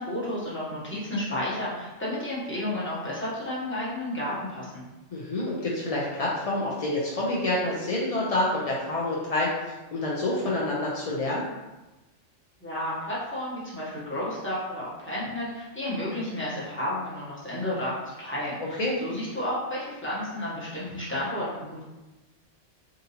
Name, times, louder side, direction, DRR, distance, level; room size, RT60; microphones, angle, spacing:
voice 1, 0.0-4.8 12.6-21.8, left 1 dB, 10° left, -9 dB, 0.9 m, -32 dB
voice 2, 5.1-11.4 18.8-19.0, left 2 dB, 65° left, -5 dB, 0.3 m, -27 dB
3.7 x 2.6 x 2.7 m, 1.1 s
omnidirectional pair, 1.3 m